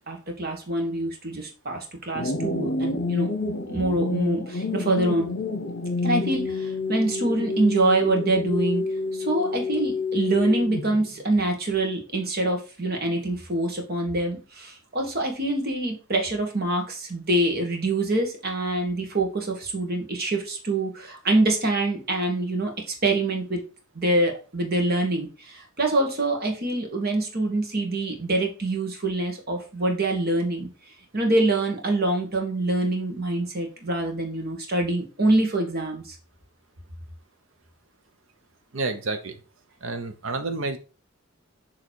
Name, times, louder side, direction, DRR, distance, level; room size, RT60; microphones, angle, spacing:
voice 1, 0.1-3.3 3.7-5.3 6.0-8.8 9.1-23.6 23.9-30.7 31.1-36.1, right 2 dB, 50° right, 2 dB, 1.5 m, -25 dB
sound 1, 2.1-11.1, left 3 dB, 55° left, 0.8 m, -28 dB
voice 2, 38.7-39.4 39.8-40.8, right 3 dB, 65° right, 9 dB, 0.8 m, -29 dB
6.7 x 3.1 x 4.5 m, 0.35 s
head